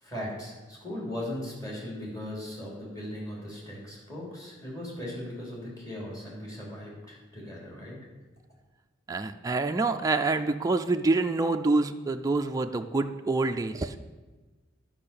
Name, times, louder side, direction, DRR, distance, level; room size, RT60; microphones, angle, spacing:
voice 1, 0.0-8.0, left 1 dB, 20° left, -4 dB, 3.2 m, -38 dB
voice 2, 9.1-13.9, right 3 dB, 20° right, 5 dB, 0.4 m, -26 dB
10.5 x 5.5 x 6.9 m, 1.2 s
head